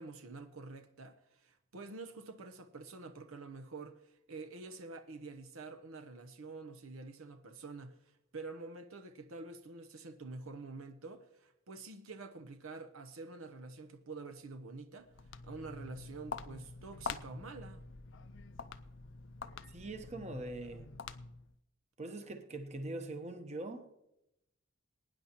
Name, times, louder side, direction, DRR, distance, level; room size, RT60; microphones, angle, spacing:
voice 1, 0.0-8.0 8.3-15.1 15.4-17.9, right 3 dB, 80° right, 0.8 m, -47 dB
Walk footsteps, 15.0-21.6, left 5 dB, 60° left, 0.5 m, -46 dB
voice 2, 19.7-20.9 22.0-23.9, right 2 dB, 30° right, 1.0 m, -42 dB
22.0 x 9.7 x 3.0 m
head